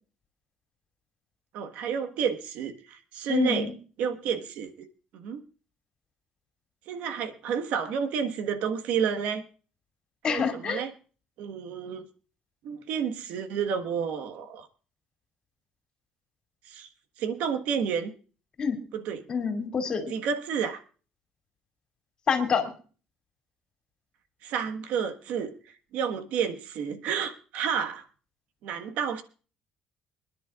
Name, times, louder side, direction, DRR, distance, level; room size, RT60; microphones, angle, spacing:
voice 1, 1.5-3.7 4.0-4.7 5.1-5.4 6.9-9.4 10.3-10.9 11.4-12.1 12.6-14.7 16.6-16.9 17.2-18.1 18.9-19.2 20.1-20.8 24.4-25.5 25.9-28.0 28.6-29.2, right 7 dB, 75° right, 7 dB, 1.5 m, -30 dB
voice 2, 3.3-3.7 10.2-10.8 18.6-18.8 19.3-20.1 22.3-22.7, left 6 dB, 35° left, 5 dB, 2.6 m, -27 dB
26.0 x 10.5 x 2.4 m, 0.38 s
cardioid pair, 150°, 2 cm